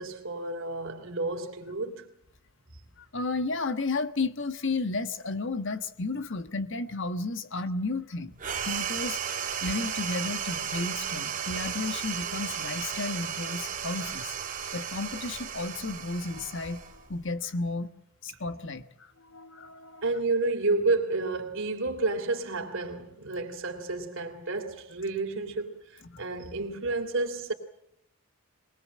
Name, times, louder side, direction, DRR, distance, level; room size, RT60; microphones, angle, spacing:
voice 1, 0.0-2.1 20.0-27.5, right 3 dB, 60° right, 3.2 m, -30 dB
voice 2, 3.0-14.3 14.7-17.9 18.2-20.0 26.0-26.2, left 3 dB, 55° left, 1.3 m, -33 dB
sound 1, 8.4-17.3, right 8 dB, 35° right, 3.1 m, -34 dB
22.5 x 20.5 x 7.6 m
head